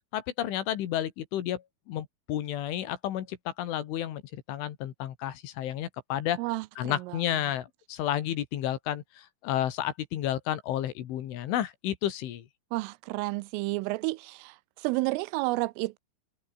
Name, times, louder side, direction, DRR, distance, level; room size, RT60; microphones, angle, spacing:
voice 1, 0.1-6.4 6.8-12.5, left 12 dB, 70° left, 4.3 m, -31 dB
voice 2, 6.4-7.2 12.7-16.0, right 22 dB, 85° right, 3.1 m, -31 dB
omnidirectional pair, 5.9 m